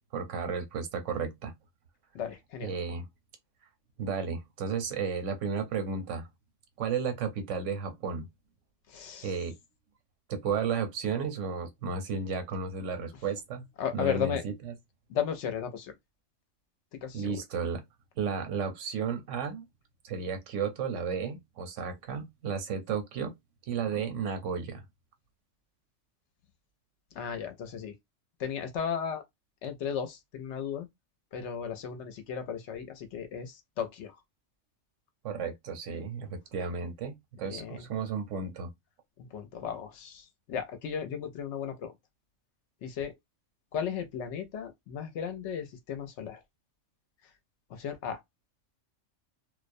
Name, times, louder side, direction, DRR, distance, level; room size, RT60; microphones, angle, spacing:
voice 1, 0.1-1.5 2.6-3.1 4.0-6.3 6.8-8.2 9.2-9.6 10.3-13.7 13.9-14.7 17.1-17.8 18.2-19.6 20.0-23.3 23.7-24.8 35.2-38.7, right 5 dB, 75° right, 1.0 m, -33 dB
voice 2, 2.1-2.7 8.9-9.3 13.8-14.4 15.1-15.9 17.0-17.4 27.1-27.9 28.4-29.2 29.6-30.9 31.3-34.2 37.4-37.9 39.2-41.9 42.8-43.2 43.7-46.4 47.7-48.2, left 8 dB, 70° left, 0.9 m, -35 dB
2.3 x 2.1 x 2.5 m
omnidirectional pair, 1.3 m